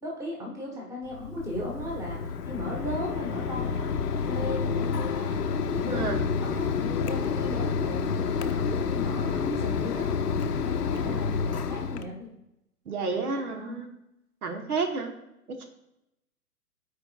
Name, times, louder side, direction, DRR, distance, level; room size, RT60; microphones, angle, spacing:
voice 1, 0.0-6.1 6.4-10.1 10.6-12.3 13.1-13.8, left 1 dB, 5° right, -2 dB, 1.2 m, -37 dB
Mechanisms, 1.1-12.0, left 6 dB, 85° left, 0.7 m, -29 dB
voice 2, 5.9-6.2 11.0-11.3 12.9-13.9 14.4-15.1 15.6-15.7, right 4 dB, 70° right, 5 dB, 1.2 m, -31 dB
13.5 x 4.5 x 2.3 m, 0.85 s
hypercardioid pair, 125°, 46 cm